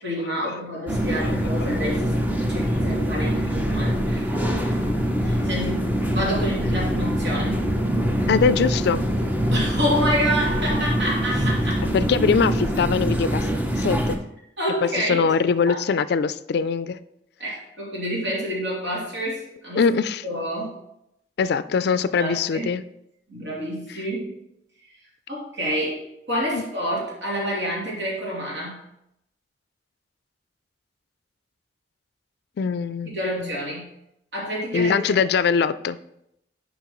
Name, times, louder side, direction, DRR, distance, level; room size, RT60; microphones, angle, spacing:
voice 1, 0.0-4.8 5.2-5.8 6.1-7.6 9.5-11.8 14.6-15.2 15.7-15.8 17.4-20.0 20.2-20.8 22.2-22.7 23.3-24.4 25.3-26.0 26.3-28.8 33.0-33.9 34.3-35.1, equal, 70° right, -5 dB, 3.1 m, -28 dB
sound 1, 0.9-14.2, equal, 10° right, 0.7 m, -24 dB
voice 2, 8.3-9.0 11.9-13.5 13.8-14.2 14.8-17.0 19.8-20.2 21.4-22.8 26.5-26.6 32.6-33.1 33.4-33.5 34.7-36.0, left 5 dB, 65° left, 14 dB, 0.3 m, -22 dB
10.5 x 5.1 x 3.1 m, 0.80 s
head